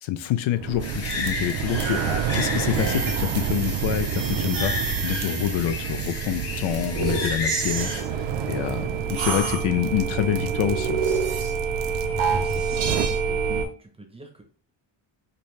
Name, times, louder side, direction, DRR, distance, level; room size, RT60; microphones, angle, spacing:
voice 1, 0.0-11.0, left 12 dB, 80° left, 11 dB, 0.6 m, -27 dB
sound 1, 0.5-13.1, right 8 dB, 65° right, 0.7 m, -30 dB
sound 2, 0.8-8.0, left 3 dB, 30° left, 0.9 m, -33 dB
sound 3, 1.8-13.7, right 5 dB, 90° right, 1.4 m, -29 dB
voice 2, 12.1-13.4 13.8-14.4, right 1 dB, 10° right, 3 dB, 0.7 m, -44 dB
5.3 x 2.7 x 3.1 m, 0.41 s
cardioid pair, 170°, 46 cm